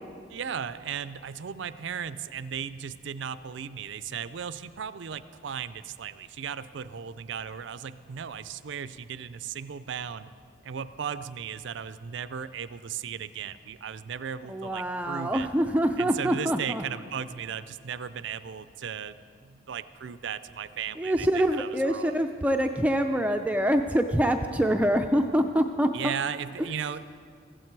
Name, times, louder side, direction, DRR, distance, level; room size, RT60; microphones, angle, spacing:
voice 1, 0.3-10.3 10.6-15.5 16.0-19.2 19.4-22.1 25.9-27.0, right 7 dB, 65° right, 14 dB, 0.4 m, -36 dB
voice 2, 14.5-16.8 21.0-26.1, equal, 5° right, 5 dB, 0.3 m, -25 dB
15.5 x 15.0 x 4.6 m, 2.2 s
head